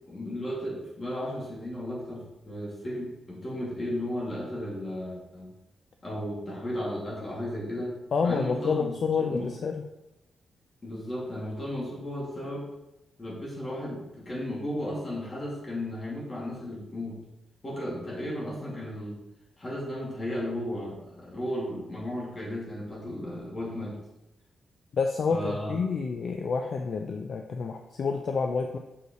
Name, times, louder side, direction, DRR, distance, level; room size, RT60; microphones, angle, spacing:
voice 1, 0.1-5.5 6.0-9.0 9.3-9.5 10.8-12.7 13.2-17.2 17.6-19.2 19.6-24.0 25.3-25.7, left 1 dB, 30° left, -4 dB, 2.4 m, -34 dB
voice 2, 8.1-9.8 24.9-28.8, left 5 dB, 55° left, 4 dB, 0.5 m, -28 dB
6.9 x 6.5 x 3.1 m, 0.91 s
cardioid pair, 120°, 0 cm